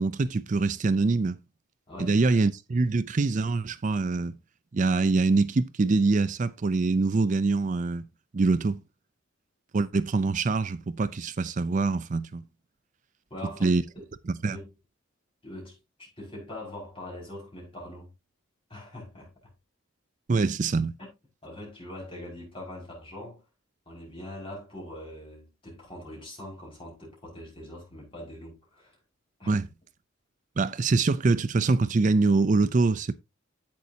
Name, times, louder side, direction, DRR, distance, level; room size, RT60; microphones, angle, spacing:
voice 1, 0.0-1.4 2.0-4.3 4.7-8.0 8.3-8.8 9.7-12.4 13.6-13.8 14.3-14.6 20.3-21.0 29.5-29.7 30.6-33.1, right 3 dB, 35° right, 0.4 m, -24 dB
voice 2, 1.9-2.4 13.3-14.1 14.5-14.7 15.4-18.1 18.7-19.3 21.0-21.1 21.4-23.4 23.9-29.0 29.4-29.5, left 1 dB, 25° left, 5.7 m, -42 dB
10.5 x 8.2 x 2.8 m
head